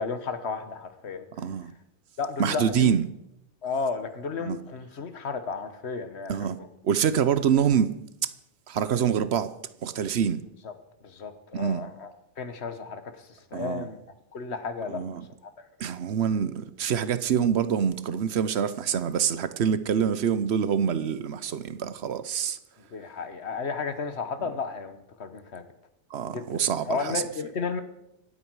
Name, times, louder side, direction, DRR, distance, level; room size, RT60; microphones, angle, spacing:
voice 1, 0.0-1.3 2.2-2.9 3.6-6.7 10.6-10.7 11.0-14.0 14.3-15.0 15.4-15.5 22.8-25.6 26.2-26.5 26.8-27.8, left 5 dB, 65° left, 1.5 m, -33 dB
voice 2, 1.4-1.7 2.4-3.1 4.4-4.6 6.3-6.6 6.8-8.0 8.7-9.5 9.8-10.4 11.5-11.8 13.5-13.9 14.9-15.3 15.8-22.6 26.1-27.2, right 8 dB, 70° right, 1.0 m, -26 dB
25.0 x 8.4 x 4.7 m
omnidirectional pair, 1.2 m